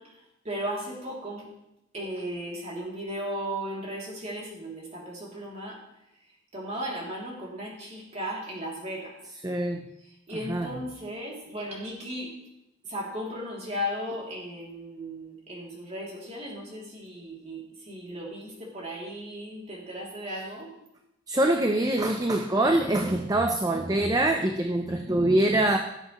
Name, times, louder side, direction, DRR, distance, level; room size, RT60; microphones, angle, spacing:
voice 1, 0.0-1.5 1.9-5.8 6.5-9.2 10.3-12.3 12.8-20.7, equal, 35° right, -3 dB, 3.0 m, -36 dB
voice 2, 9.4-9.9 10.5-10.7 21.3-25.8, right 1 dB, 20° right, 4 dB, 0.6 m, -24 dB
16.5 x 7.8 x 3.2 m, 0.86 s
head